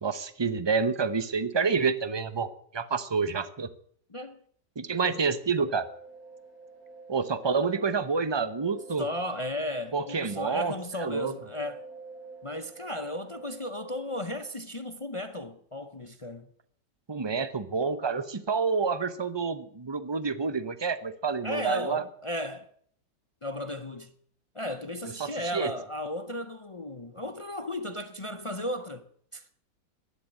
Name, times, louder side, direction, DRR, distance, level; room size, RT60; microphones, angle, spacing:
voice 1, 0.0-3.7 4.8-5.9 7.1-9.0 9.9-10.7 11.0-11.3 17.1-22.0 25.2-25.7, right 5 dB, 25° right, 0.6 m, -28 dB
sound 1, 5.6-14.5, right 3 dB, 50° right, 8.1 m, -49 dB
voice 2, 9.0-11.8 12.4-16.5 21.4-22.7 23.4-24.1 24.5-29.1 29.3-29.5, left 1 dB, 55° left, 0.3 m, -35 dB
13.0 x 11.0 x 9.9 m
omnidirectional pair, 1.8 m